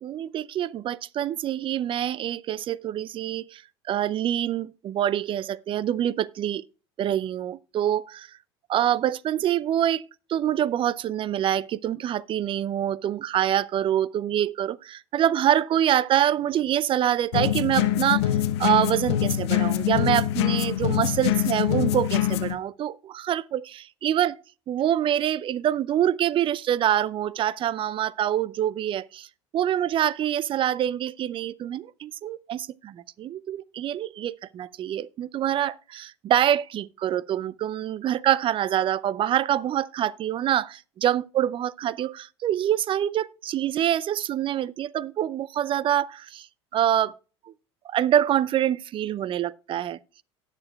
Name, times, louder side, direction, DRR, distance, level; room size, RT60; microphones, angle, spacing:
voice 1, 0.0-3.6 3.9-6.6 7.0-8.3 8.7-18.3 18.6-24.4 24.7-29.3 29.5-46.5 46.7-47.2 47.5-47.6 47.8-50.0, right 11 dB, 35° right, 0.5 m, -25 dB
sound 1, 17.3-22.6, left 12 dB, 70° left, 0.8 m, -24 dB
18.0 x 6.7 x 2.3 m
hypercardioid pair, 75°, 15 cm